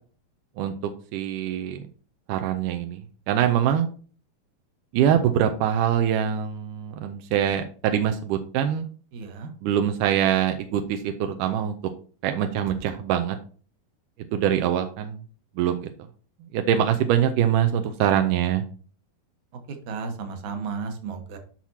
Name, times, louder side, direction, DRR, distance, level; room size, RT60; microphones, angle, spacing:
voice 1, 0.6-1.8 2.3-3.0 3.3-3.9 4.9-8.9 9.6-11.7 12.2-13.4 14.3-15.2 15.6-15.9 16.5-18.6, right 9 dB, 80° right, 7 dB, 1.9 m, -23 dB
voice 2, 9.1-9.5 19.7-21.4, right 5 dB, 65° right, 5 dB, 2.3 m, -33 dB
10.5 x 5.9 x 2.8 m, 0.40 s
omnidirectional pair, 4.4 m